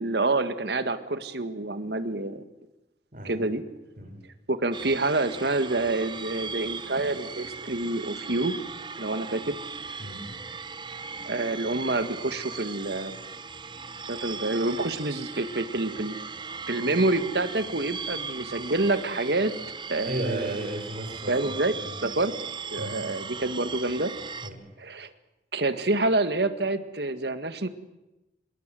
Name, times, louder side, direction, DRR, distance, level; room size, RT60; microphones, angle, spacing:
voice 1, 0.0-2.4 3.2-3.6 4.5-8.6 9.0-9.5 11.2-13.2 14.1-16.2 16.7-19.5 19.9-20.6 21.3-21.7 22.0-22.3 22.7-24.1 24.8-25.1 25.5-27.7, right 2 dB, 70° right, 11 dB, 1.8 m, -27 dB
voice 2, 3.1-3.5 4.0-4.2 10.0-10.4 20.0-22.0 22.8-23.1 24.4-24.6, right 1 dB, 45° right, 3 dB, 5.9 m, -35 dB
sound 1, 4.7-24.5, right 5 dB, 25° right, 1.0 m, -38 dB
27.0 x 21.5 x 7.7 m, 0.98 s
head